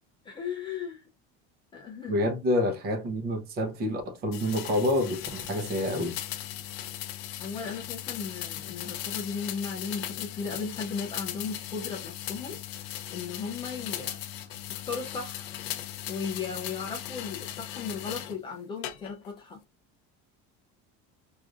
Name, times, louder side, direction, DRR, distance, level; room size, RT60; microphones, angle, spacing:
voice 1, 0.2-1.0 1.7-2.2 7.4-12.6 13.1-14.2 14.7-15.5 16.1-19.6, left 5 dB, 15° left, 0.3 m, -36 dB
voice 2, 2.1-6.2, left 1 dB, 30° right, 0.8 m, -28 dB
sound 1, 4.3-18.4 18.8-19.4, left 13 dB, 80° left, 0.7 m, -38 dB
4.8 x 2.6 x 2.3 m
cardioid pair, 180°, 31 cm